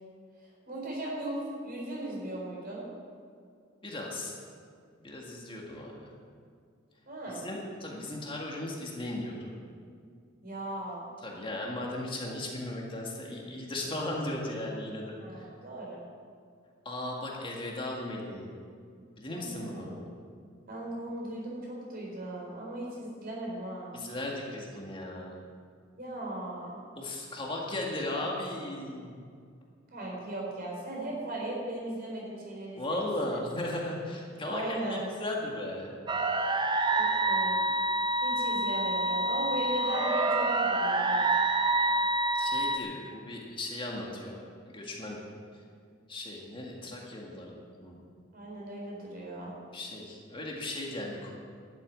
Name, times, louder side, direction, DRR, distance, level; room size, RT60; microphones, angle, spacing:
voice 1, 0.7-2.9 7.1-7.5 10.4-11.1 15.2-16.0 19.3-19.9 20.7-24.0 26.0-26.8 29.9-33.4 34.5-35.1 37.0-37.6 38.2-41.3 48.3-49.6, right 1 dB, 45° right, -3 dB, 4.3 m, -37 dB
voice 2, 3.8-4.4 5.0-6.1 7.3-9.5 11.2-15.5 16.9-18.6 19.2-20.1 23.9-25.4 27.0-29.2 32.8-34.6 34.9-36.0 42.3-44.4 44.7-45.2 46.1-48.0 49.7-51.3, left 1 dB, 25° left, -2 dB, 1.8 m, -36 dB
sound 1, 36.1-42.8, right 2 dB, 25° right, 0.7 m, -27 dB
12.0 x 8.2 x 9.5 m, 2.2 s
head